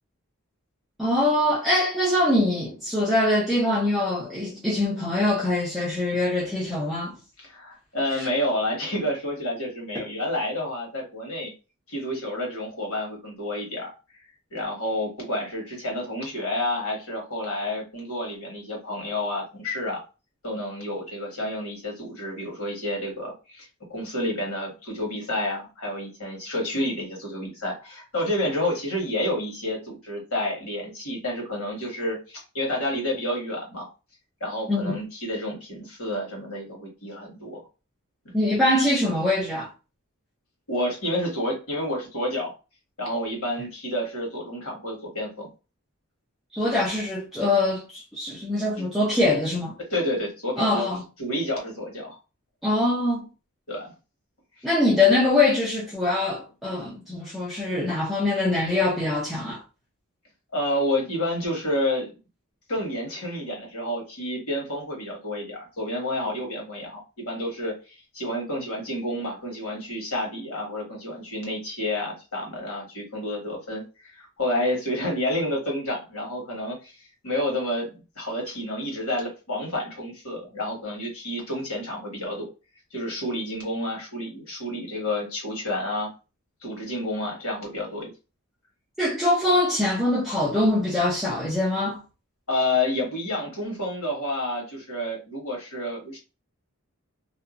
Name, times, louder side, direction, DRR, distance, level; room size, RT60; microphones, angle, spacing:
voice 1, 1.0-7.1 8.2-8.3 9.9-10.0 34.7-35.0 38.3-39.7 46.5-49.7 50.6-51.0 52.6-53.3 54.6-59.6 89.0-92.0, left 2 dB, ahead, 0.6 m, -23 dB
voice 2, 7.4-11.5 11.9-14.2 14.5-20.0 20.4-33.9 34.4-37.6 40.7-42.5 43.0-45.5 48.8-48.9 49.9-50.8 51.2-52.2 53.7-53.9 60.5-62.1 62.7-76.9 77.2-82.5 82.9-86.1 86.6-88.0 92.5-96.2, left 1 dB, 80° left, 1.5 m, -29 dB
2.8 x 2.3 x 2.4 m
head